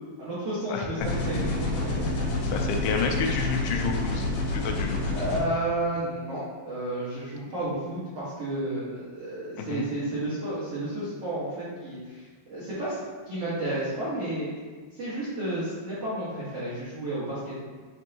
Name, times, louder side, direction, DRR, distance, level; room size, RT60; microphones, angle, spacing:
voice 1, 0.2-2.3 5.1-13.0 13.2-14.5 14.9-17.6, right 1 dB, 80° right, -11 dB, 1.3 m, -32 dB
sound 1, 1.0-5.4, left 2 dB, 70° left, 2.0 m, -28 dB
voice 2, 2.4-5.0 9.6-9.9, left 5 dB, 90° left, 2 dB, 3.1 m, -30 dB
9.6 x 3.4 x 2.8 m, 1.5 s
omnidirectional pair, 5.3 m